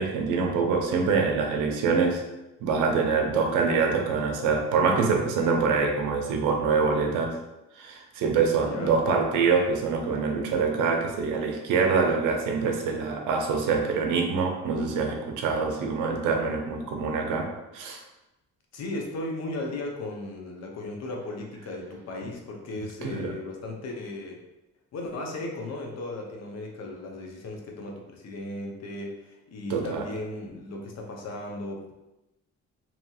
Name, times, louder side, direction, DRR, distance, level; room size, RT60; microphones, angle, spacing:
voice 1, 0.0-2.2 2.6-7.3 7.8-18.0 23.0-23.3 29.7-30.0, right 5 dB, 85° right, 2 dB, 0.6 m, -25 dB
voice 2, 18.7-24.4 24.9-32.0, left 2 dB, 60° left, 1 dB, 0.7 m, -36 dB
2.8 x 2.7 x 2.3 m, 0.97 s
cardioid pair, 90°, 30 cm